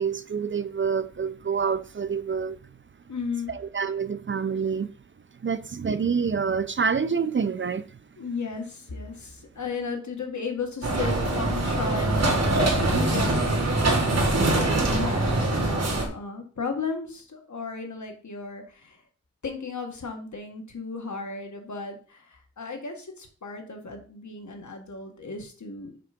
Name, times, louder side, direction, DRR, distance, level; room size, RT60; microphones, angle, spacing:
voice 1, 0.0-2.6 3.5-4.9 5.4-7.9, right 6 dB, 40° right, 0.5 m, -27 dB
voice 2, 3.1-3.5 8.2-12.6 12.9-19.0 19.4-25.9, left 4 dB, 75° left, 1.6 m, -35 dB
sound 1, 10.8-16.1, right 2 dB, 60° right, 1.7 m, -23 dB
5.9 x 4.6 x 5.2 m
wide cardioid pair, 85°, 29 cm